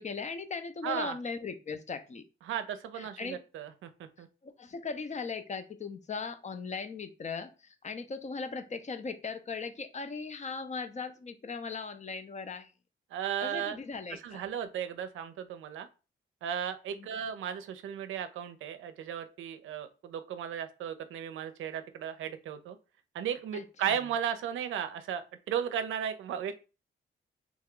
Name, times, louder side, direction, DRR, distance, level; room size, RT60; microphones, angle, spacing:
voice 1, 0.0-2.2 2.9-3.4 4.4-12.7 13.4-14.4 17.0-17.1 23.5-24.0, left 5 dB, 35° left, 10 dB, 0.5 m, -38 dB
voice 2, 0.8-1.1 2.4-4.3 13.1-13.8 14.1-15.9 16.4-22.8 23.1-26.6, right 9 dB, 90° right, 10 dB, 0.4 m, -35 dB
3.0 x 2.3 x 3.7 m, 0.31 s
cardioid pair, 70°, 20 cm